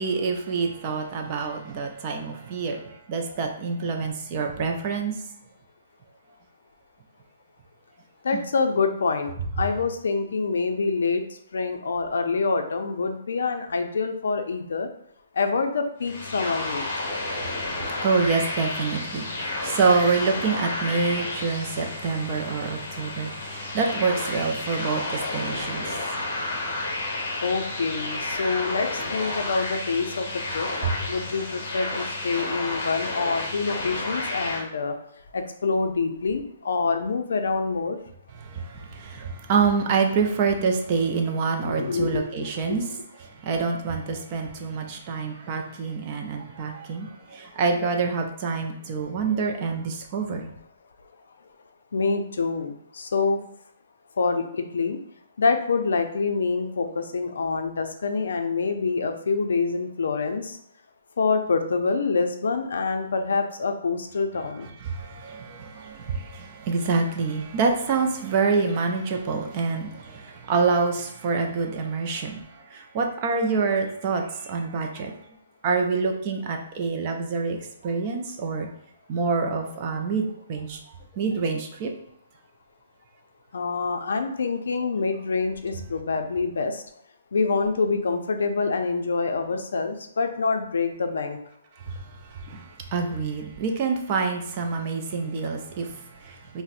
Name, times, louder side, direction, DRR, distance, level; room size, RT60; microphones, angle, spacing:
voice 1, 0.0-5.2 8.3-8.4 17.3-27.0 30.8-31.0 38.4-50.5 64.8-75.2 75.6-77.6 77.8-78.7 79.1-80.8 81.1-81.9 91.8-96.6, right 4 dB, 25° right, 3 dB, 0.4 m, -27 dB
voice 2, 8.2-11.2 11.5-14.9 15.4-16.8 27.4-30.7 31.1-35.0 35.3-38.0 41.7-42.8 51.9-53.4 54.2-55.0 55.4-60.6 61.2-64.7 83.5-86.8 87.3-91.4, left 4 dB, 75° left, 6 dB, 0.4 m, -26 dB
sound 1, 16.0-34.6, left 2 dB, 35° left, 0.8 m, -31 dB
4.0 x 2.0 x 2.5 m, 0.73 s
hypercardioid pair, 175°, 0 cm